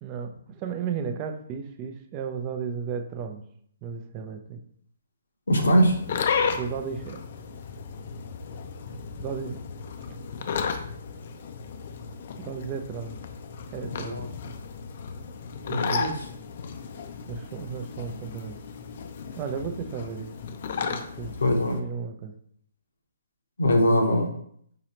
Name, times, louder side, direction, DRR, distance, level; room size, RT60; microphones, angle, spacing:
voice 1, 0.0-3.4 3.8-4.6 6.6-7.2 9.2-9.6 12.4-13.2 13.7-14.3 15.7-16.1 17.3-18.6 19.3-20.3 20.8-21.4 21.7-22.3, right 6 dB, 25° right, 5 dB, 0.5 m, -34 dB
voice 2, 5.5-5.9 13.9-14.3 15.7-16.2 21.4-21.8 23.6-24.3, equal, 70° left, 2 dB, 0.9 m, -22 dB
sound 1, 5.6-21.8, left 6 dB, 50° left, 0.5 m, -34 dB
4.8 x 2.9 x 2.9 m, 0.65 s
figure-of-eight pair, 130°, 0 cm